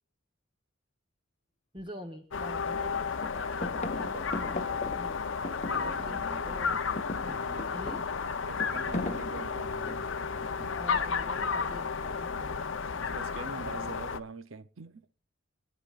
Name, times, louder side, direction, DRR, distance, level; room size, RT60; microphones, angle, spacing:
voice 1, 1.7-5.2 5.7-6.8 7.7-8.0 10.7-12.7, equal, 25° right, 1.1 m, -46 dB
sound 1, 1.8-1.9 2.3-2.9 3.2-6.3 6.6-10.2 11.2-11.7, left 2 dB, 35° left, 1.0 m, -39 dB
sound 2, 2.3-14.2, left 5 dB, 65° left, 0.7 m, -33 dB
voice 2, 5.6-6.6 7.4-7.8 8.5-10.9 12.9-15.1, right 3 dB, 70° right, 0.7 m, -44 dB
25.5 x 9.9 x 2.5 m
head